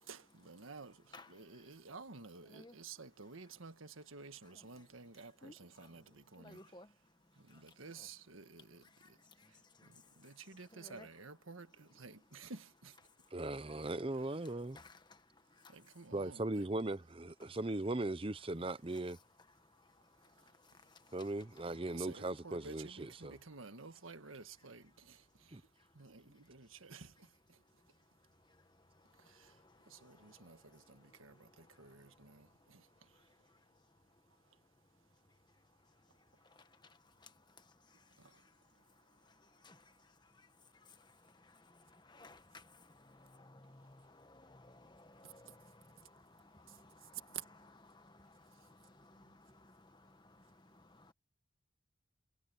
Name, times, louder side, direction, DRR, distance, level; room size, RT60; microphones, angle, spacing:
voice 1, 0.0-6.8 7.4-9.2 9.5-13.0 14.4-14.5 15.5-16.7 18.6-18.7 20.2-21.2 21.6-25.7 25.9-27.6 29.1-33.3 34.4-34.6 37.9-38.4 38.7-39.2 43.7-43.8 45.2-45.5 46.7-47.5 48.5-48.7 49.2-49.4, right 5 dB, 85° right, 1.6 m, -53 dB
voice 2, 1.1-1.7 2.4-2.8 4.4-4.9 5.1-8.1 8.8-11.1 13.1-16.1 17.4-17.6 18.9-22.3 25.3-26.2 26.4-26.7 27.5-51.1, left 2 dB, 20° left, 1.3 m, -62 dB
voice 3, 13.3-14.8 16.1-19.2 21.1-23.4 25.5-25.6, right 2 dB, 25° right, 0.7 m, -38 dB
head